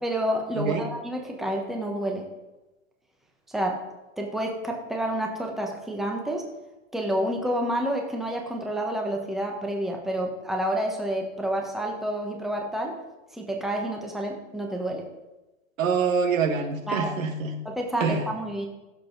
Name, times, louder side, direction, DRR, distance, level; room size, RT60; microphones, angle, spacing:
voice 1, 0.0-2.3 3.5-3.8 4.2-6.4 6.9-12.9 13.3-15.0 16.9-17.2 17.6-18.7, right 1 dB, ahead, 1 dB, 1.2 m, -29 dB
voice 2, 15.8-17.5 18.0-18.2, right 5 dB, 85° right, 6 dB, 1.9 m, -25 dB
15.5 x 7.3 x 4.1 m, 1.1 s
supercardioid pair, 145°, 39 cm